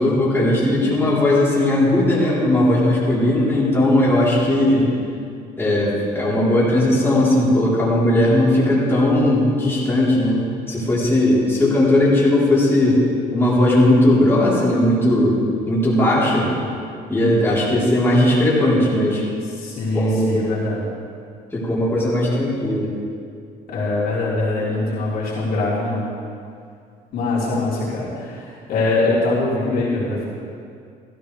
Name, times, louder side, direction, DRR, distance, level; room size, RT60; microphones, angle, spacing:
voice 1, 0.0-4.9 5.6-13.0 13.3-15.4 15.7-16.5 17.1-19.2 19.9-20.6 21.5-22.9, left 1 dB, 15° left, -8 dB, 3.8 m, -17 dB
voice 2, 19.4-20.9 23.7-26.1 27.1-30.3, left 2 dB, 60° left, -7 dB, 3.7 m, -23 dB
15.5 x 14.0 x 3.4 m, 2.3 s
cardioid pair, 110°, 17 cm